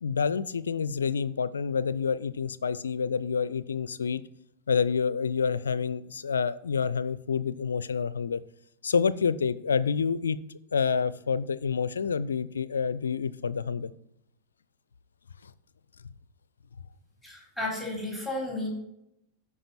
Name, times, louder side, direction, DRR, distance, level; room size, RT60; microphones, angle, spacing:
voice 1, 0.0-4.2 4.7-8.4 8.8-10.4 10.7-13.9 15.4-15.5, left 6 dB, 70° left, 17 dB, 0.4 m, -28 dB
voice 2, 17.2-18.7, left 2 dB, 5° right, -3 dB, 4.0 m, -33 dB
13.0 x 5.0 x 4.3 m, 0.78 s
figure-of-eight pair, 90°, 0 cm